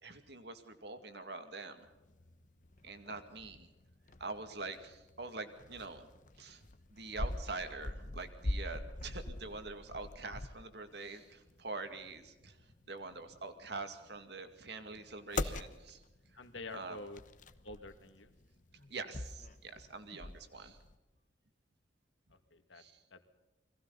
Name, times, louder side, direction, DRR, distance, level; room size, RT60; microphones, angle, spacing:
voice 1, 0.0-1.9 2.8-3.7 4.2-6.1 6.4-16.0 16.7-17.0 18.9-20.8 22.7-23.0, right 3 dB, 60° right, 8 dB, 2.3 m, -45 dB
sound 1, 1.8-21.0, left 2 dB, 45° left, 1.0 m, -44 dB
voice 2, 16.4-17.2 17.6-18.3 22.3-22.8 23.1-23.2, left 2 dB, 85° left, 7 dB, 2.2 m, -48 dB
29.5 x 22.0 x 4.1 m, 1.1 s
head